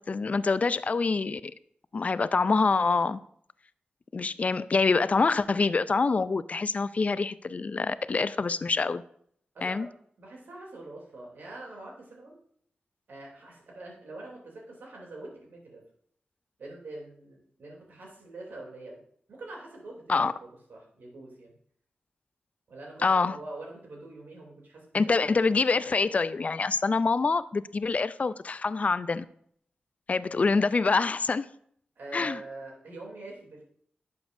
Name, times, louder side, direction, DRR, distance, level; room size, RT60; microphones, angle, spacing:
voice 1, 0.1-1.5 1.9-3.2 4.1-9.0 9.6-9.9 20.1-20.3 23.0-23.4 24.9-29.3 30.1-31.5 32.1-32.4, left 4 dB, 45° left, 0.4 m, -26 dB
voice 2, 9.5-9.9 10.2-12.4 13.1-15.8 16.6-19.0 19.3-21.5 22.7-25.3 32.0-33.6, right 2 dB, 85° right, 2.9 m, -44 dB
11.0 x 7.1 x 2.6 m
wide cardioid pair, 75°, 3 cm